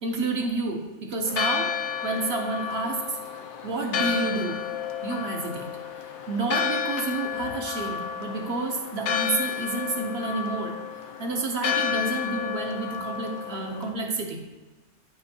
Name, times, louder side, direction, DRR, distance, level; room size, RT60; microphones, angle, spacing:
voice 1, 0.0-1.7 2.0-3.2 3.6-4.6 5.0-5.7 6.3-10.7 11.2-14.4, right 3 dB, 65° right, 2 dB, 1.0 m, -29 dB
Church bell, 1.3-13.9, left 7 dB, 75° left, 0.9 m, -31 dB
8.8 x 5.1 x 2.8 m, 1.2 s
omnidirectional pair, 1.2 m